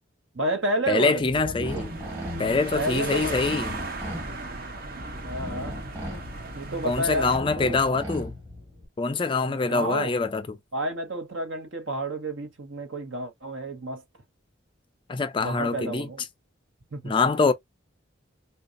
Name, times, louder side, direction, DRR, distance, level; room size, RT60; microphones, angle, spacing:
voice 1, 0.3-1.8 2.7-3.6 5.2-5.8 6.5-7.8 9.4-10.1 10.7-14.0 15.4-16.2 16.9-17.1, right 1 dB, 75° right, 1.0 m, -31 dB
voice 2, 0.9-1.9 2.4-3.8 6.8-8.3 9.0-10.6 15.1-16.1 17.0-17.5, left 4 dB, 25° left, 0.3 m, -24 dB
sound 1, 1.2-8.9, left 1 dB, 15° right, 1.4 m, -38 dB
sound 2, 1.6-7.4, right 3 dB, 45° right, 0.7 m, -36 dB
4.0 x 2.3 x 2.4 m
head